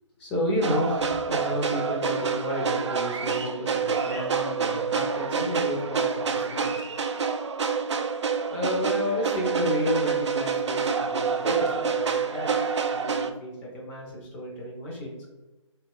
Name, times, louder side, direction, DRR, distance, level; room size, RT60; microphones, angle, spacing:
voice 1, 0.2-6.9 8.5-15.3, equal, 10° left, -3 dB, 0.5 m, -31 dB
sound 1, 0.6-13.3, right 5 dB, 60° right, 0.4 m, -27 dB
4.0 x 3.1 x 2.3 m, 1.1 s
figure-of-eight pair, 145°, 16 cm